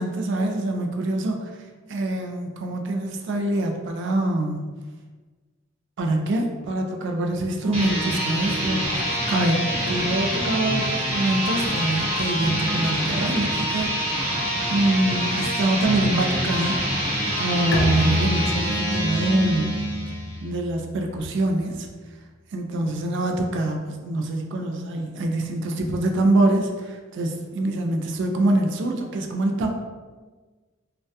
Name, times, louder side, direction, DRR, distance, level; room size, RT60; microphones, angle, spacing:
voice 1, 0.0-1.5 1.9-4.8 6.0-13.9 14.7-16.8 17.1-19.9 20.4-21.9 22.5-29.7, right 1 dB, 60° right, 3 dB, 0.3 m, -25 dB
sound 1, 7.6-20.4, equal, 30° right, 0.8 m, -26 dB
Bowed string instrument, 17.7-21.2, left 2 dB, 65° left, 0.4 m, -29 dB
2.2 x 2.1 x 2.6 m, 1.3 s
head